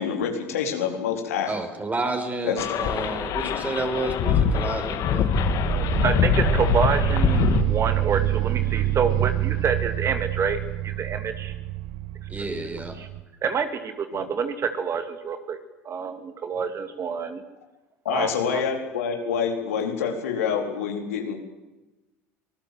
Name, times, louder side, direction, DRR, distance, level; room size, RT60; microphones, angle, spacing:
voice 1, 0.0-1.5 2.4-2.6 14.1-14.2 18.0-21.3, left 7 dB, 80° left, 2 dB, 4.2 m, -27 dB
voice 2, 1.5-5.3 12.3-13.0, right 2 dB, 20° right, 6 dB, 5.3 m, -30 dB
sound 1, 2.6-7.6, left 8 dB, 55° left, 2.4 m, -24 dB
sound 2, 5.3-13.2, right 13 dB, 60° right, 1.8 m, -27 dB
voice 3, 6.0-11.5 13.0-13.1 13.4-15.6 15.8-17.4 18.1-18.6, right 6 dB, 40° right, 8 dB, 2.5 m, -27 dB
25.0 x 19.5 x 7.8 m, 1.1 s
hypercardioid pair, 75°, 8 cm